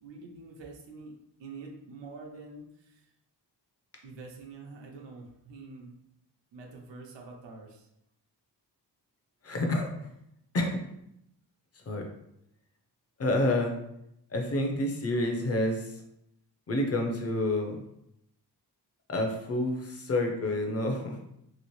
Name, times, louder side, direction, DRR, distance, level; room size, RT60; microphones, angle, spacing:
voice 1, 0.0-3.1 4.0-6.0 6.5-7.9, right 3 dB, 85° right, 0 dB, 0.7 m, -46 dB
voice 2, 9.4-10.1 10.5-10.8 11.9-12.1 13.2-13.8 14.3-16.0 16.7-17.8 19.1-21.2, left 1 dB, 35° left, 2 dB, 0.5 m, -29 dB
2.9 x 2.8 x 3.0 m, 0.80 s
wide cardioid pair, 160°, 42 cm